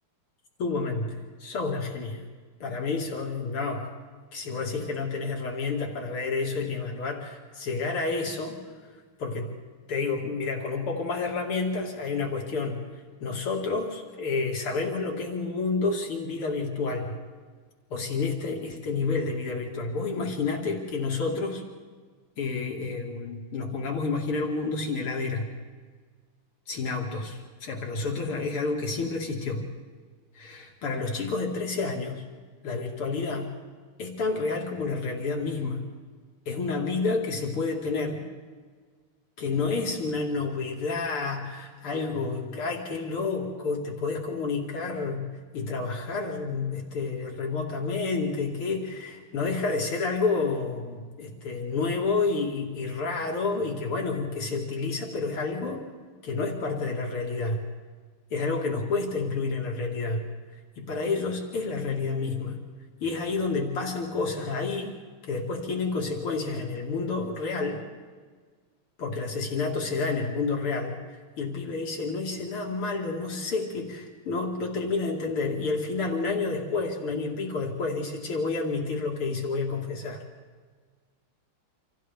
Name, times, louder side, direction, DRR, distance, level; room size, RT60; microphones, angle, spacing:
voice 1, 0.6-2.2 2.6-3.9 4.3-8.6 9.2-9.5 9.9-12.8 13.2-17.2 17.9-21.6 22.4-25.5 26.7-27.3 27.6-29.6 30.3-32.2 32.6-33.5 34.0-35.8 36.5-38.2 39.4-55.9 56.2-57.6 58.3-60.3 60.8-62.6 63.0-64.9 65.3-67.8 69.0-80.2, left 4 dB, 80° left, 0 dB, 3.1 m, -29 dB
29.5 x 26.5 x 3.6 m, 1.5 s
omnidirectional pair, 2.4 m